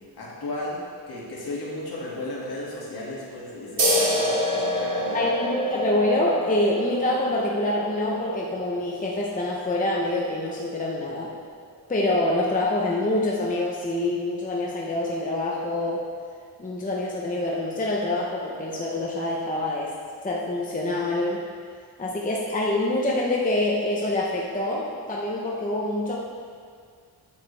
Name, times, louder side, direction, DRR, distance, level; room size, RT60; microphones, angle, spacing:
voice 1, 0.2-0.8 1.1-5.2, left 1 dB, 65° left, -6 dB, 2.1 m, -34 dB
sound 1, 3.8-10.9, equal, 90° right, 1.6 m, -28 dB
voice 2, 5.1-11.3 11.9-16.0 16.6-19.9 20.2-21.4 22.0-26.2, left 1 dB, 20° left, -3 dB, 0.7 m, -26 dB
9.6 x 7.2 x 3.3 m, 2.1 s
wide cardioid pair, 170°, 41 cm